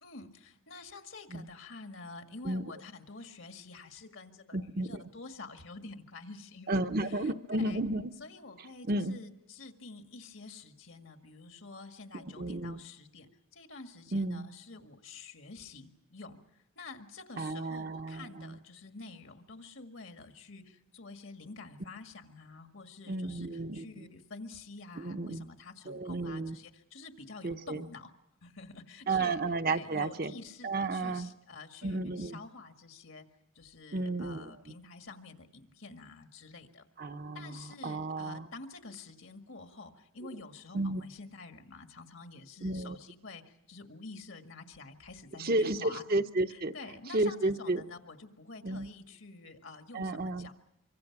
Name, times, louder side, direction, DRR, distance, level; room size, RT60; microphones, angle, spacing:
voice 1, 0.0-7.8 8.2-16.4 16.8-28.1 28.4-33.3 33.6-36.9 37.3-46.0 46.5-50.5, left 3 dB, 70° left, 6 dB, 1.9 m, -48 dB
voice 2, 4.5-5.0 6.7-8.1 8.8-9.2 12.2-12.8 14.1-14.5 17.4-18.6 23.1-23.8 25.0-25.5 25.9-26.6 27.4-27.9 29.1-30.3 30.6-31.3 31.8-32.4 33.9-34.7 37.0-38.5 40.7-41.0 42.6-43.0 45.4-46.7 47.1-47.8 48.6-48.9 49.9-50.5, right 2 dB, 45° right, 8 dB, 0.8 m, -32 dB
25.0 x 24.5 x 6.0 m, 0.83 s
head